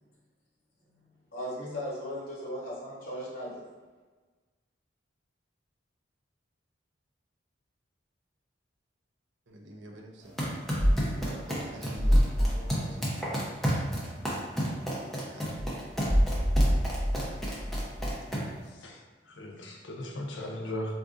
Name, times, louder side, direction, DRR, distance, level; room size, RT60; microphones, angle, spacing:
voice 1, 1.3-3.6, equal, 50° left, -7 dB, 1.0 m, -37 dB
voice 2, 9.5-10.5 11.1-13.5 15.3-15.9, right 1 dB, 70° right, 1 dB, 0.5 m, -47 dB
sound 1, 10.2-18.6, equal, ahead, 0.5 m, -33 dB
sound 2, 10.8-11.3 11.9-12.7 15.6-18.1, equal, 30° right, 1.0 m, -25 dB
voice 3, 18.7-21.0, left 1 dB, 75° left, 1 dB, 0.5 m, -38 dB
3.8 x 2.4 x 2.4 m, 1.4 s
head